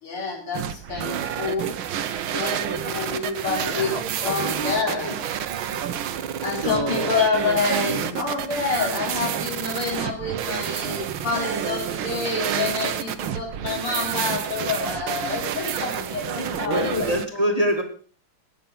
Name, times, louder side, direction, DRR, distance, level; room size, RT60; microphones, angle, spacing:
voice 1, 0.0-1.7 2.3-3.9 4.2-5.0 6.4-17.5, left 4 dB, 85° left, 0 dB, 4.6 m, -28 dB
sound 1, 0.5-17.3, right 9 dB, 70° right, 1.7 m, -29 dB
voice 2, 3.7-5.1 6.6-7.2 7.9-8.1 16.4-17.8, equal, 20° right, 3 dB, 1.8 m, -27 dB
18.0 x 6.8 x 5.7 m, 0.43 s
omnidirectional pair, 2.4 m